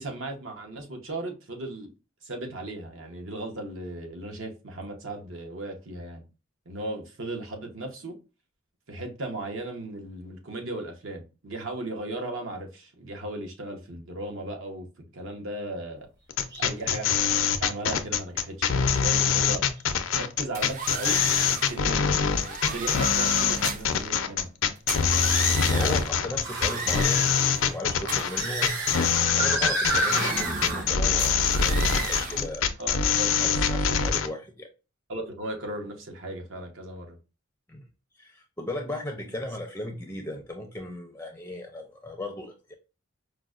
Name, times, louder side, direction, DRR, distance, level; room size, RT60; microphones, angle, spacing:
voice 1, 0.0-1.9 2.2-6.2 6.7-8.2 8.9-14.9 15.1-16.1 16.6-17.1 17.6-19.6 20.1-22.2 22.6-24.5 32.3-32.5 32.8-33.6 35.1-37.2 39.4-39.5, right 1 dB, 75° right, 3 dB, 0.8 m, -36 dB
sound 1, 16.3-34.3, left 6 dB, 70° left, 0.4 m, -24 dB
sound 2, 16.5-16.7 17.3-17.4 19.5-19.6 23.1-23.2 26.4-27.0 27.9-30.9, right 1 dB, 60° right, 1.3 m, -30 dB
sound 3, 20.5-21.8 22.3-24.0 24.8-26.1 26.5-27.8 28.1-29.3 29.8-30.9 31.2-32.4, right 5 dB, 40° right, 0.5 m, -35 dB
voice 2, 25.7-27.2 27.6-28.8 29.4-32.7 33.4-34.7 37.7-37.9 38.2-42.7, left 1 dB, 10° left, 3 dB, 0.4 m, -36 dB
4.8 x 2.1 x 2.4 m, 0.31 s
head